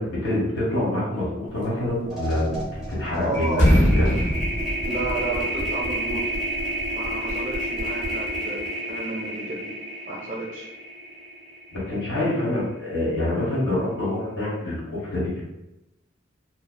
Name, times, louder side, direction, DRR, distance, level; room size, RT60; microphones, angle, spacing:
voice 1, 0.0-3.6 3.9-4.2 11.7-15.4, left 1 dB, 85° left, -5 dB, 1.2 m, -26 dB
sound 1, 1.6-1.8 2.1-12.3, right 1 dB, ahead, 0.9 m, -30 dB
sound 2, 2.5-3.2 3.5-5.6, equal, 40° left, 0.6 m, -21 dB
voice 2, 3.2-3.7 4.8-6.3 6.9-10.7, right 2 dB, 40° right, -1 dB, 0.5 m, -32 dB
2.7 x 2.2 x 2.2 m, 0.92 s
head